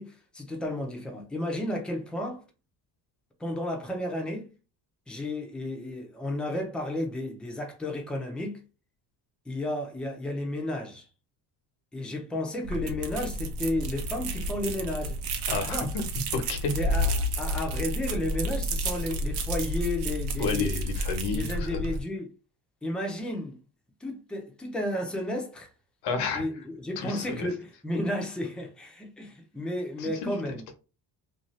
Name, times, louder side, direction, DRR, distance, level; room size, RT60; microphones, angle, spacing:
voice 1, 0.0-2.4 3.4-4.5 5.1-8.6 9.5-11.1 11.9-15.2 15.6-15.9 16.7-20.8 21.3-22.3 22.8-23.6 24.0-25.7 26.3-26.5 26.8-30.7, left 1 dB, ahead, 0.4 m, -32 dB
sound 1, 12.6-22.0, equal, 80° right, 0.7 m, -31 dB
voice 2, 15.5-16.0 16.3-16.8 20.4-21.8 26.0-26.5 27.0-27.5 30.0-30.7, left 4 dB, 90° left, 1.0 m, -31 dB
2.7 x 2.3 x 3.0 m
cardioid pair, 155°, 39 cm